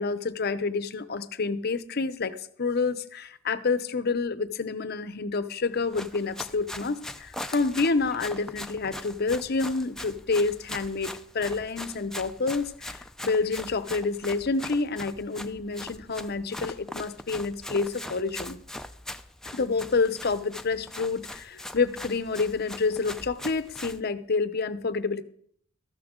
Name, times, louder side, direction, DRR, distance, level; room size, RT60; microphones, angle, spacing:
voice 1, 0.0-18.6 19.5-25.2, left 4 dB, 50° left, 13 dB, 0.7 m, -28 dB
Run, 5.8-24.0, left 1 dB, 5° left, 0.4 m, -41 dB
14.0 x 12.5 x 3.7 m, 0.63 s
head